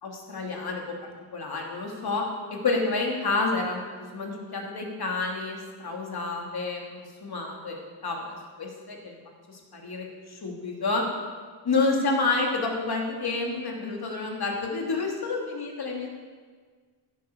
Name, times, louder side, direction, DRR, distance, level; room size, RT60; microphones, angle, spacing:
voice 1, 0.0-2.2 2.5-9.2 9.5-11.0 11.6-16.1, left 3 dB, 65° left, 0 dB, 3.0 m, -29 dB
15.5 x 9.5 x 6.9 m, 1.5 s
wide cardioid pair, 140°, 42 cm